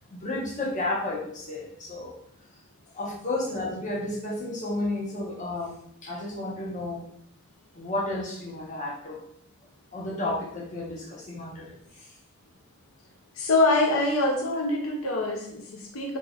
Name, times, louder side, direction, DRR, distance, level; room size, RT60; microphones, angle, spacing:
voice 1, 0.1-2.1 2.9-5.8 6.0-7.0 7.7-9.2 9.9-11.7, left 2 dB, 35° left, -3 dB, 0.9 m, -32 dB
voice 2, 13.4-16.2, left 2 dB, 85° left, 1 dB, 0.6 m, -24 dB
3.7 x 3.6 x 2.3 m, 0.71 s
head